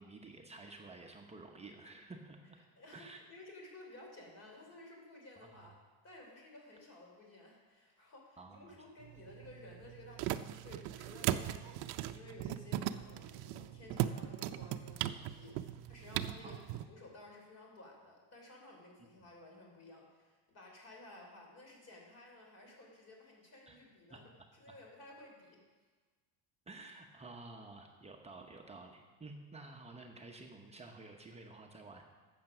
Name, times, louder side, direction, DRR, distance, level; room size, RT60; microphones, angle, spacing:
voice 1, 0.0-2.6 2.9-3.2 5.5-5.7 8.4-8.8 16.4-16.9 23.7-23.8 24.1-24.2 24.7-24.8 26.7-32.1, right 3 dB, 15° right, 2 dB, 0.8 m, -52 dB
voice 2, 2.8-5.7 6.0-16.6 16.9-24.2 24.5-25.6, left 2 dB, 35° left, 0 dB, 3.4 m, -55 dB
sound 1, 9.0-16.8, right 13 dB, 60° right, 0.6 m, -39 dB
12.0 x 7.9 x 6.0 m, 1.4 s
cardioid pair, 145°, 45 cm